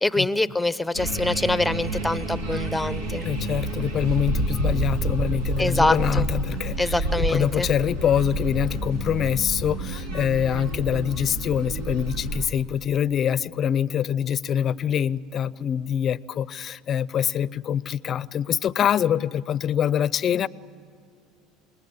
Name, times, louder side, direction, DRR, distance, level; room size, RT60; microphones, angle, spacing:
voice 1, 0.0-3.2 5.6-6.2 6.8-7.7, left 2 dB, 5° left, 0.8 m, -24 dB
sound 1, 0.9-12.5, right 2 dB, 85° right, 2.4 m, -29 dB
voice 2, 3.2-20.5, left 9 dB, 40° left, 0.6 m, -25 dB
27.0 x 20.5 x 8.7 m
supercardioid pair, 95°, 0 cm